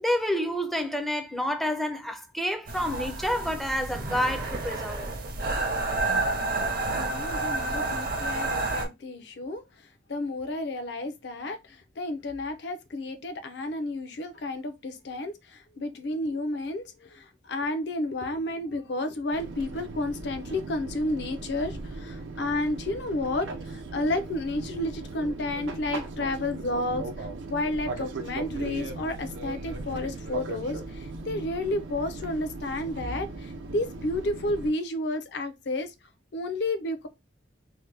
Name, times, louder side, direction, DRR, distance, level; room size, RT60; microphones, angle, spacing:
voice 1, 0.0-5.1, equal, ahead, 0.4 m, -29 dB
sound 1, 2.7-8.9, right 2 dB, 50° right, 0.6 m, -30 dB
voice 2, 6.9-35.9 36.3-37.1, left 2 dB, 65° left, 0.5 m, -31 dB
Fixed-wing aircraft airplane, 19.3-34.7, right 3 dB, 90° right, 0.6 m, -38 dB
2.8 x 2.1 x 3.2 m
head